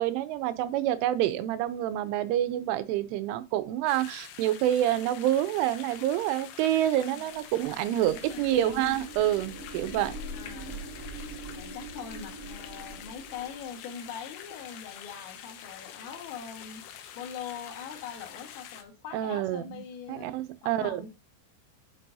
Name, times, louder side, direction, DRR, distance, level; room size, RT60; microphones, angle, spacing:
voice 1, 0.0-10.1 19.1-19.8 20.1-21.0, right 12 dB, 85° right, 3.2 m, -27 dB
sound 1, 3.9-18.8, left 9 dB, 75° left, 2.6 m, -46 dB
sound 2, 7.6-13.8, right 2 dB, 5° right, 4.0 m, -43 dB
voice 2, 8.2-9.0 10.3-10.8 11.5-16.8 17.2-20.3 20.6-21.1, left 7 dB, 90° left, 4.2 m, -42 dB
10.0 x 7.5 x 2.7 m
omnidirectional pair, 5.6 m